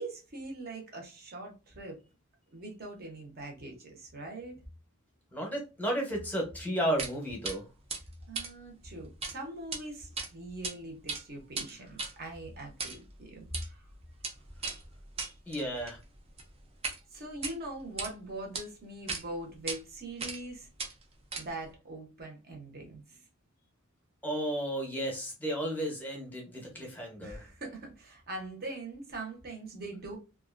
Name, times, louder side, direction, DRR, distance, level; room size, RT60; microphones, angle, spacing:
voice 1, 0.0-2.0 2.5-4.6 8.3-13.8 17.1-20.7 21.4-23.2 27.2-30.2, right 2 dB, 45° right, 0.9 m, -42 dB
voice 2, 5.3-7.7 15.5-16.0 24.2-27.4, equal, 10° left, 0.8 m, -33 dB
sound 1, 7.0-7.1 7.4-7.6 7.9-9.3 9.6-9.8 10.2-10.7 11.0-17.0 17.3-18.1 18.5-18.6 19.1-19.2 19.7-19.8 20.2-20.5 20.8-21.7, right 4 dB, 25° right, 0.5 m, -38 dB
2.6 x 2.3 x 2.4 m
head